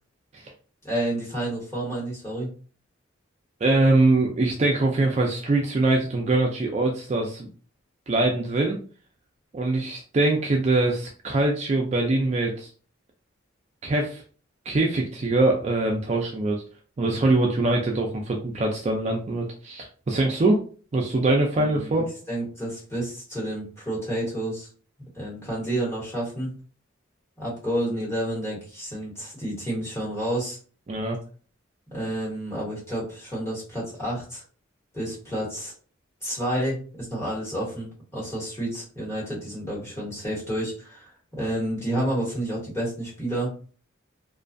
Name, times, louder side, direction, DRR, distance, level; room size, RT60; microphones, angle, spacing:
voice 1, 0.8-2.5 21.6-24.7 25.1-26.5 27.4-30.6 31.9-34.4 34.9-35.7 36.2-43.5, right 1 dB, 15° left, -6 dB, 1.1 m, -30 dB
voice 2, 3.6-7.5 8.1-8.8 9.5-12.7 13.8-14.2 14.7-16.6 17.0-20.6 20.9-22.1 30.9-31.2, right 2 dB, 35° right, 1 dB, 0.3 m, -23 dB
2.4 x 2.3 x 2.5 m, 0.40 s
head